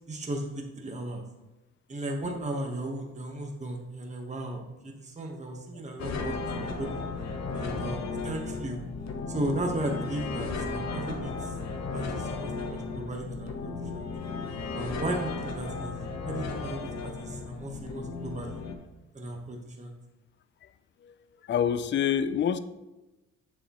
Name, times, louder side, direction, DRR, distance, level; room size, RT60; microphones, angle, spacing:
voice 1, 0.1-1.2 1.9-7.0 7.5-8.8 9.3-11.5 11.9-14.1 14.7-16.0 16.2-18.6 19.1-19.9, right 1 dB, 25° right, 1 dB, 1.2 m, -35 dB
sound 1, 6.0-18.7, left 4 dB, 60° left, 1.0 m, -35 dB
voice 2, 21.4-22.6, left 8 dB, 40° left, 12 dB, 0.5 m, -26 dB
7.0 x 6.9 x 3.0 m, 1.0 s
cardioid pair, 90°, 30 cm